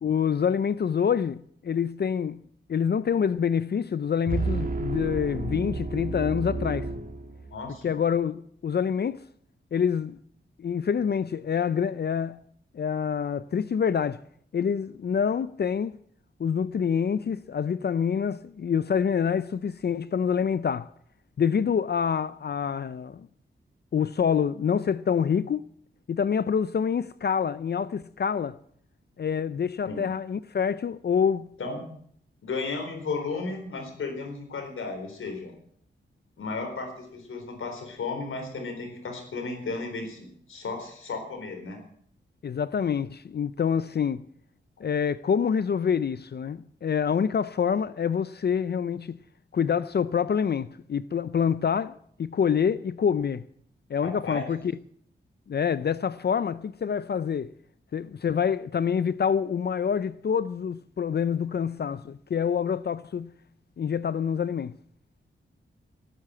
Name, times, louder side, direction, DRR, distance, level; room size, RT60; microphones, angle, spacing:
voice 1, 0.0-2.4 2.7-6.9 7.8-9.2 9.7-10.2 10.6-12.4 12.7-14.2 14.5-15.9 16.4-20.9 21.4-23.3 23.9-25.7 26.1-28.6 29.2-31.5 42.4-44.2 44.8-49.2 49.5-53.5 53.9-54.6 55.5-57.5 57.9-63.3 63.8-64.8, left 7 dB, 55° left, 0.5 m, -26 dB
sound 1, 4.3-7.7, right 3 dB, 45° right, 2.4 m, -31 dB
voice 2, 7.5-7.8 29.9-30.0 31.6-31.8 32.4-35.5 36.4-41.8 54.0-54.5, left 3 dB, 90° left, 4.1 m, -34 dB
18.5 x 9.8 x 7.7 m
cardioid pair, 80°, 20 cm